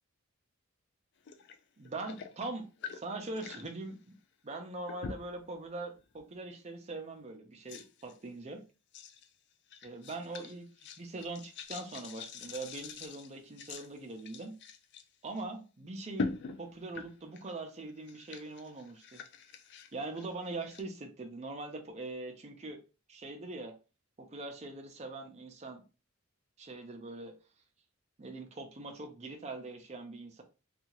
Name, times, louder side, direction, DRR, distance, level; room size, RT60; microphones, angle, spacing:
sound 1, 1.3-1.6 1.8-3.7 4.9-5.4 6.0-6.2 7.0-7.1 7.7-8.2 8.9-9.3 9.7-15.0 15.4-15.5 16.1-17.6 17.9-20.8, left 4 dB, 55° left, 0.3 m, -43 dB
voice 1, 1.8-4.1 4.4-8.6 9.8-10.7 11.0-14.5 15.2-19.2 19.9-22.8 23.1-23.7 24.2-25.8 26.6-27.3 28.2-30.4, right 2 dB, 30° right, 4 dB, 0.5 m, -42 dB
2.7 x 2.4 x 2.9 m, 0.33 s
head